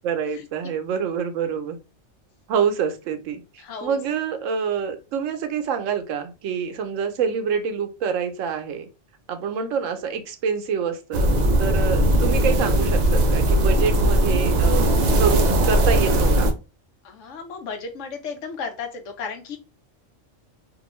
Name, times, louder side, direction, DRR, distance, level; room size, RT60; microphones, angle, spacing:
voice 1, 0.0-1.8 2.5-8.9 9.3-14.9 15.2-16.5, right 6 dB, 90° right, 8 dB, 1.0 m, -26 dB
voice 2, 3.6-4.0 17.0-19.6, left 5 dB, 80° left, 6 dB, 1.0 m, -34 dB
sound 1, 11.1-16.5, right 1 dB, 60° right, 0.4 m, -19 dB
2.6 x 2.4 x 3.0 m, 0.29 s
omnidirectional pair, 1.3 m